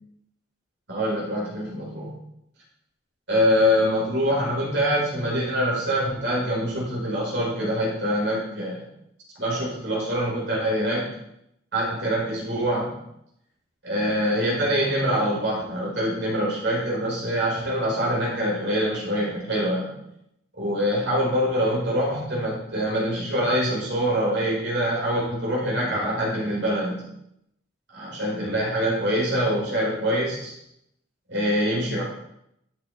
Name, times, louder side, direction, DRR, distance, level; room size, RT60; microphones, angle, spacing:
voice 1, 0.9-2.2 3.3-8.8 9.4-11.1 11.7-12.9 13.8-19.9 20.6-27.0 27.9-30.5 31.3-32.0, equal, 65° right, -5 dB, 5.6 m, -24 dB
13.0 x 8.5 x 4.4 m, 0.78 s
head